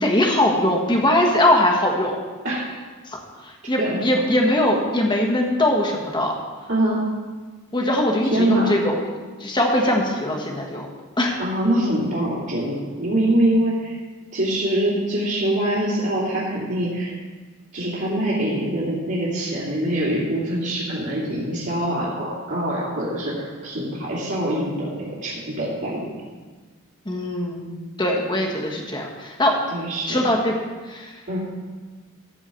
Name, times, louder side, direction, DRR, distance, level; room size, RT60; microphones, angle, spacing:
voice 1, 0.0-2.2 3.1-6.3 7.7-9.1 9.4-10.9 11.2-11.4 27.0-27.7 28.0-29.6 30.1-30.6 30.8-31.4, left 1 dB, 20° left, 1 dB, 1.5 m, -21 dB
voice 2, 6.7-7.0 8.3-8.7 11.4-13.9 14.3-17.1 17.7-26.0 29.7-30.3 31.3-31.4, right 1 dB, 55° right, -11 dB, 2.7 m, -24 dB
14.0 x 4.7 x 7.0 m, 1.4 s
head